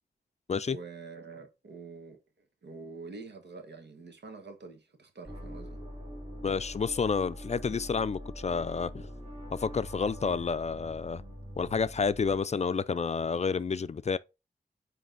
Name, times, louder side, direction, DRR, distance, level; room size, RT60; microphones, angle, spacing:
voice 1, 0.7-2.2 2.6-5.8, right 4 dB, 90° right, 1.3 m, -46 dB
sound 1, 5.3-12.4, equal, 35° right, 3.8 m, -43 dB
voice 2, 6.4-9.1 9.5-11.2 11.6-14.2, left 5 dB, 40° left, 0.4 m, -30 dB
9.2 x 3.3 x 3.8 m
wide cardioid pair, 85°, 17 cm